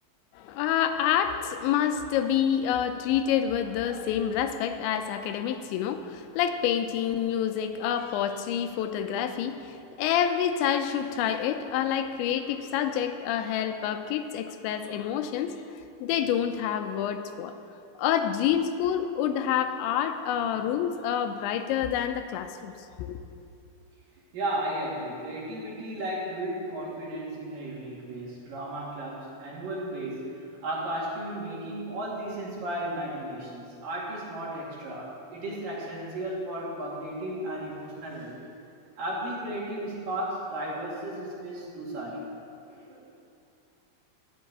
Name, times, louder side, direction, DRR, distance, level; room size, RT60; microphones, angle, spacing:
voice 1, 0.4-15.6 16.0-17.5 18.0-23.2, left 9 dB, 85° left, 8 dB, 2.9 m, -28 dB
voice 2, 24.3-38.4 39.0-42.2 42.7-43.1, right 1 dB, 55° right, -5 dB, 3.8 m, -34 dB
13.5 x 7.4 x 8.4 m, 2.5 s
omnidirectional pair, 5.2 m